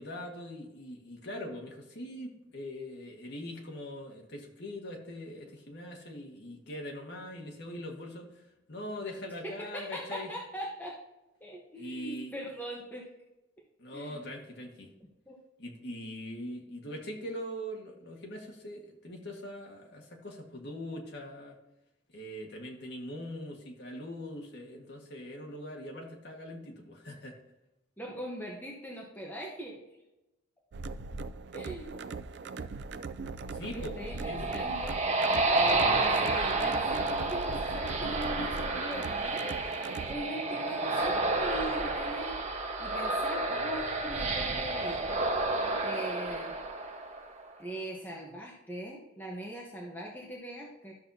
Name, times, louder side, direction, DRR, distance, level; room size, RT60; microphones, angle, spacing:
voice 1, 0.0-10.3 11.8-12.3 13.8-14.9 15.6-21.6 22.1-27.4 33.5-33.9 34.3-34.6, left 1 dB, 65° left, 0 dB, 1.7 m, -42 dB
voice 2, 9.4-11.0 11.4-13.1 13.9-14.2 15.3-15.4 28.0-29.8 31.5-31.9 33.7-35.0 35.5-45.0 45.8-46.6 47.6-50.9, right 1 dB, 10° left, -3 dB, 1.1 m, -41 dB
sound 1, 30.7-40.2, right 4 dB, 65° right, 0.4 m, -40 dB
sound 2, 33.8-47.4, right 2 dB, 35° right, 1.1 m, -30 dB
12.5 x 6.4 x 2.8 m, 0.96 s
head